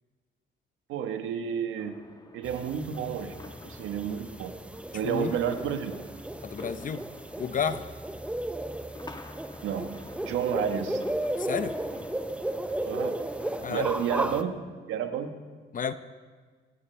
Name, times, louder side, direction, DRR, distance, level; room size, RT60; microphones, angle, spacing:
voice 1, 0.9-2.0 2.3-3.3 3.6-4.5 4.9-6.0 9.6-9.9 10.2-11.0 12.8-13.1 13.7-14.5 14.9-15.3, right 8 dB, 90° right, 6 dB, 1.4 m, -30 dB
sound 1, 1.8-14.2, left 2 dB, 20° left, 1.3 m, -49 dB
sound 2, 2.4-14.4, right 1 dB, 5° right, 0.7 m, -35 dB
voice 2, 5.0-5.4 6.4-7.1 7.4-7.9 11.4-11.8 13.6-13.9 15.7-15.9, left 7 dB, 40° left, 12 dB, 0.8 m, -31 dB
26.0 x 12.5 x 3.4 m, 1.5 s
cardioid pair, 90°, 20 cm